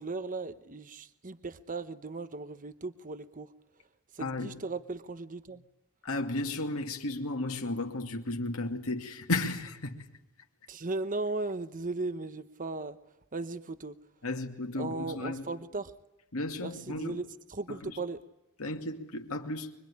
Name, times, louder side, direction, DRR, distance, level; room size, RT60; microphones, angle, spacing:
voice 1, 0.0-3.5 4.1-5.6 10.7-13.0 13.3-13.9 14.8-15.9 16.6-18.2, right 3 dB, 35° right, 1.0 m, -37 dB
voice 2, 4.2-4.6 6.0-10.1 14.2-15.5 16.3-17.2 17.7-18.0 18.6-19.7, left 2 dB, 65° left, 2.4 m, -34 dB
25.0 x 23.0 x 9.9 m
head